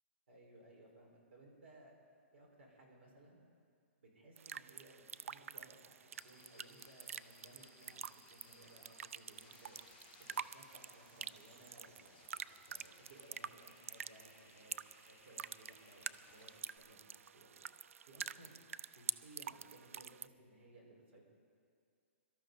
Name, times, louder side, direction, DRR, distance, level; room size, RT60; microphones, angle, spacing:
voice 1, 0.3-1.9 2.3-3.4 4.0-9.8 10.2-12.2 12.7-17.6 18.1-21.2, right 1 dB, 60° right, -1 dB, 4.7 m, -61 dB
sound 1, 4.4-20.3, right 8 dB, 80° right, 0.4 m, -48 dB
sound 2, 6.1-16.8, left 5 dB, 40° left, 3.6 m, -65 dB
24.0 x 13.0 x 4.0 m, 2.2 s
hypercardioid pair, 165°, 7 cm